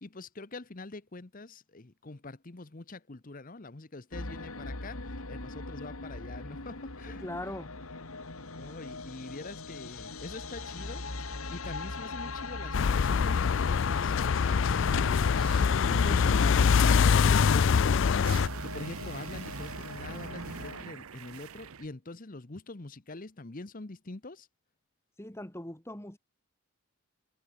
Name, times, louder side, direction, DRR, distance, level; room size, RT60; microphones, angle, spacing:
voice 1, 0.0-7.2 8.5-15.4 15.8-24.5, left 2 dB, 40° left, 0.9 m, -44 dB
sound 1, 4.1-20.8, left 3 dB, 75° left, 2.6 m, -40 dB
voice 2, 7.0-7.7 25.2-26.2, left 1 dB, 10° left, 1.9 m, -40 dB
sound 2, 12.7-18.5, left 6 dB, 55° left, 0.4 m, -24 dB
sound 3, 14.5-21.9, right 5 dB, 75° right, 0.7 m, -44 dB
head